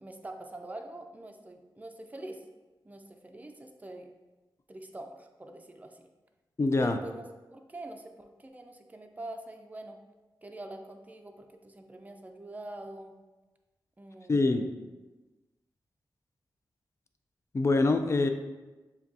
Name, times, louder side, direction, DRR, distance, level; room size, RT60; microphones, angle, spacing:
voice 1, 0.0-2.4 2.8-4.1 4.7-6.1 6.8-7.2 7.5-10.0 10.4-13.1 14.0-14.7, right 1 dB, 20° right, 4 dB, 0.5 m, -44 dB
voice 2, 6.6-7.0 14.3-14.6 17.5-18.3, left 3 dB, 35° left, 6 dB, 0.4 m, -24 dB
6.8 x 2.3 x 2.6 m, 1.2 s
cardioid pair, 60°, 8 cm